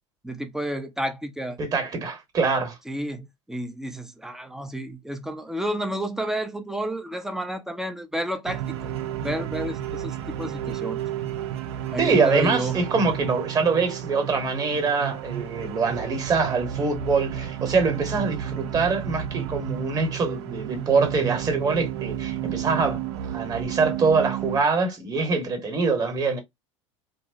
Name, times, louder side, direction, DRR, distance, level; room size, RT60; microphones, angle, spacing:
voice 1, 0.2-1.6 2.9-8.9 9.2-11.0 11.9-12.8, right 1 dB, 5° right, 0.5 m, -31 dB
voice 2, 1.6-2.8 12.0-26.4, right 4 dB, 25° right, 1.0 m, -24 dB
sound 1, 8.5-24.6, right 11 dB, 60° right, 0.6 m, -32 dB
3.0 x 2.1 x 2.5 m
figure-of-eight pair, 75°, 16 cm